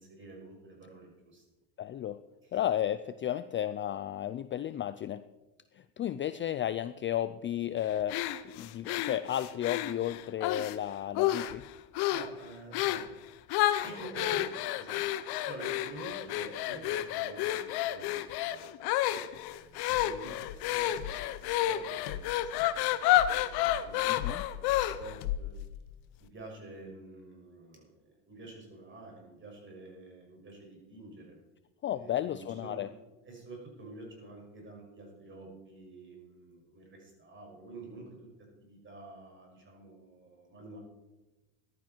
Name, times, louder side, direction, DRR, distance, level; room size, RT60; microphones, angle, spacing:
voice 1, 0.0-1.4 2.4-2.6 12.1-13.0 13.8-25.5 26.2-31.4 31.9-32.8 33.2-38.1 38.6-40.8, right 2 dB, 25° right, 0 dB, 6.2 m, -49 dB
voice 2, 1.8-2.2 2.5-5.2 5.7-11.6 24.1-24.4 31.8-32.9, left 11 dB, 30° left, 13 dB, 0.4 m, -33 dB
sound 1, 8.1-10.8 11.1-11.6 11.9-12.3 12.7-13.1 13.5-25.2, left 13 dB, 65° left, 1.0 m, -30 dB
sound 2, 19.3-26.3, left 12 dB, 90° left, 1.1 m, -42 dB
15.0 x 12.0 x 4.5 m, 1.1 s
supercardioid pair, 115°, 42 cm